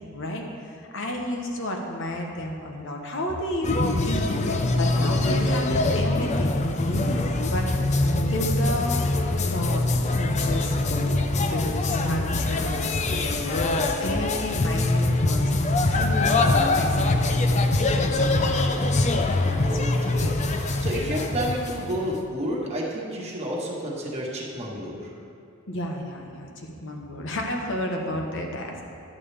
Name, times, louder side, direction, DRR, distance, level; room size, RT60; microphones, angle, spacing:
voice 1, 0.0-7.7 8.2-9.0 9.5-11.1 11.4-18.5 19.4-19.6 25.7-28.8, left 1 dB, 60° left, 2 dB, 1.1 m, -32 dB
sound 1, 3.6-22.2, left 2 dB, 35° left, 0.5 m, -23 dB
voice 2, 19.5-25.1, equal, 30° right, -4 dB, 1.5 m, -31 dB
11.0 x 8.5 x 3.4 m, 2.4 s
head